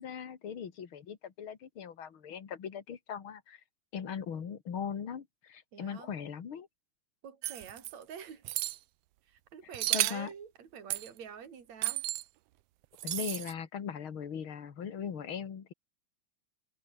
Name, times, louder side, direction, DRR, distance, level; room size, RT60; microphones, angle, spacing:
voice 1, 0.0-3.6 3.9-6.7 9.9-10.3 13.0-15.7, left 7 dB, 45° left, 2.7 m, -39 dB
voice 2, 5.7-6.1 7.2-8.5 9.3-12.1, right 7 dB, 60° right, 4.5 m, -47 dB
sound 1, 7.4-7.9 8.4-8.8 9.7-10.3 10.9-11.1 11.8-12.2 13.0-13.5, right 17 dB, 80° right, 1.4 m, -32 dB
omnidirectional pair, 3.5 m